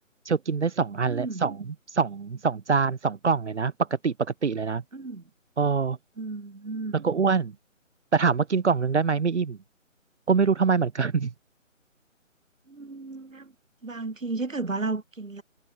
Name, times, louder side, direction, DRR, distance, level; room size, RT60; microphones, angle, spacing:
voice 1, 0.2-1.6 1.9-3.7 4.0-4.8 5.6-6.0 6.9-7.5 8.1-9.6 10.3-11.3, right 5 dB, 60° right, 0.9 m, -24 dB
voice 2, 1.1-1.4 4.9-5.2 6.2-7.0 12.7-13.5 13.8-15.4, right 3 dB, 75° right, 2.9 m, -33 dB
figure-of-eight pair, 150°, 40 cm